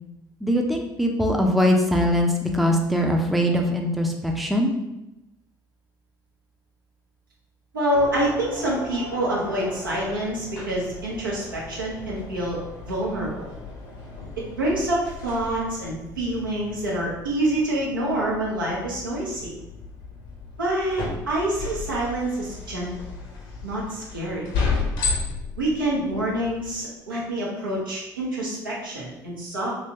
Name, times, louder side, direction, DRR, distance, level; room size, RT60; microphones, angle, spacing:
voice 1, 0.4-4.7, equal, ahead, 1 dB, 0.5 m, -22 dB
voice 2, 7.7-12.6 12.9-13.6 14.6-19.5 20.6-22.9 23.6-24.5 25.6-29.7, right 1 dB, 85° right, -4 dB, 0.8 m, -26 dB
sound 1, 7.9-26.8, left 4 dB, 65° left, 0.9 m, -34 dB
3.2 x 3.0 x 2.8 m, 0.93 s
figure-of-eight pair, 60°, 11 cm